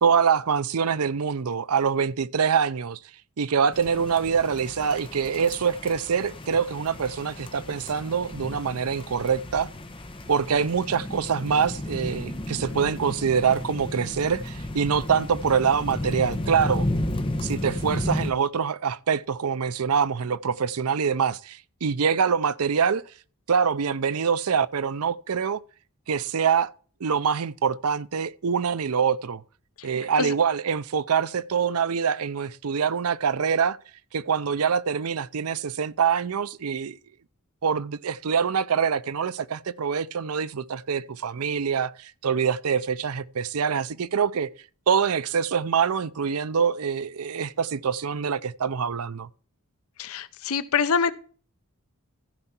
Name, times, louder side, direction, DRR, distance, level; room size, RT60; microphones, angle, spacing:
voice 1, 0.0-3.0 3.4-9.7 10.3-16.9 17.4-23.0 23.5-25.6 26.1-26.7 27.0-29.4 29.8-33.8 34.1-37.0 37.6-44.5 44.9-49.3, right 6 dB, 75° right, 0.6 m, -25 dB
sound 1, 3.7-18.3, left 1 dB, 25° left, 1.1 m, -33 dB
voice 2, 50.0-51.1, left 6 dB, 70° left, 0.7 m, -25 dB
15.0 x 5.5 x 4.4 m
head